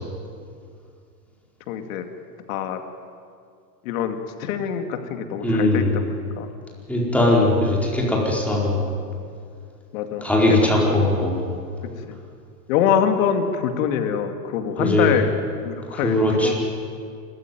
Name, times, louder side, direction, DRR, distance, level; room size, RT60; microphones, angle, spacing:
voice 1, 1.7-2.0 2.5-2.8 3.8-6.0 6.4-6.5 9.9-10.6 10.9-11.1 12.1-12.2 12.7-15.3 15.6-16.5, left 8 dB, 55° left, 6 dB, 2.4 m, -24 dB
voice 2, 5.4-5.9 6.9-8.8 10.2-11.5 14.8-15.1 15.9-16.5, left 1 dB, 5° left, -3 dB, 4.6 m, -20 dB
27.5 x 14.5 x 9.5 m, 2.3 s
supercardioid pair, 140°, 50 cm